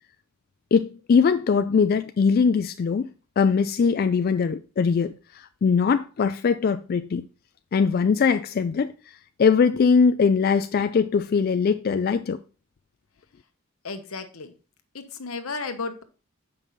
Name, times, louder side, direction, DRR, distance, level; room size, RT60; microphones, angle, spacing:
voice 1, 0.7-3.1 3.4-7.3 7.7-8.9 9.4-12.4, left 5 dB, 45° left, 0.3 m, -21 dB
voice 2, 13.8-14.5 14.9-16.0, left 4 dB, 85° left, 1.0 m, -33 dB
7.5 x 5.4 x 3.9 m
head